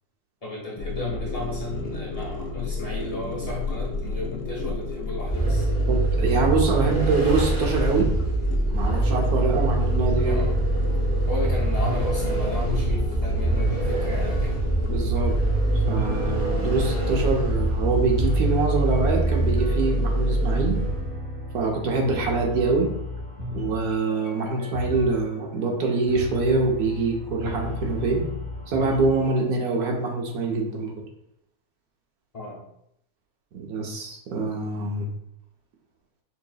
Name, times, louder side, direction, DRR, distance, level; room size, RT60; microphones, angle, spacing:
voice 1, 0.4-5.7 10.2-10.6 11.3-14.5 32.3-32.6, left 2 dB, 70° left, -6 dB, 0.3 m, -34 dB
sound 1, 0.8-16.8, left 2 dB, 90° left, 1.2 m, -33 dB
Vehicle, 5.2-21.1, right 2 dB, 10° right, 0.9 m, -24 dB
voice 2, 5.9-8.1 8.7-10.4 14.9-15.3 15.7-20.8 21.5-22.9 23.5-28.2 28.7-30.9 33.5-35.1, right 3 dB, 70° right, 0 dB, 1.2 m, -25 dB
sound 2, 10.1-29.5, left 2 dB, 50° right, 1.8 m, -35 dB
5.7 x 2.7 x 2.3 m, 0.76 s
omnidirectional pair, 1.8 m